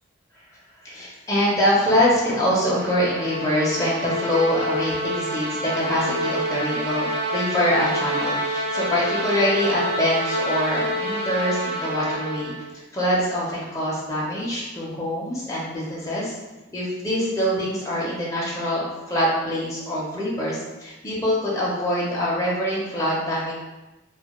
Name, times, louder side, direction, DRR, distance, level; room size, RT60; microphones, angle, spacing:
voice 1, 0.8-12.5 12.9-16.3 16.7-23.5, equal, 15° left, -6 dB, 0.4 m, -24 dB
sound 1, 2.1-12.7, equal, 85° right, 0.7 m, -27 dB
2.2 x 2.1 x 2.9 m, 1.1 s
head